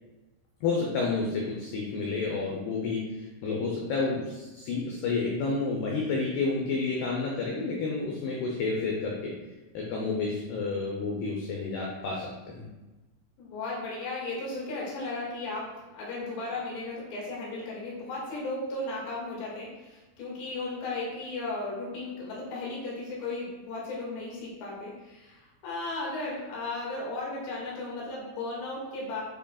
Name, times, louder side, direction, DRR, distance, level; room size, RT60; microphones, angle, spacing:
voice 1, 0.6-9.3 9.7-12.7, left 4 dB, 85° left, -2 dB, 2.3 m, -30 dB
voice 2, 13.4-29.2, left 2 dB, 65° left, -5 dB, 3.9 m, -35 dB
9.9 x 5.2 x 2.3 m, 1.1 s
omnidirectional pair, 5.8 m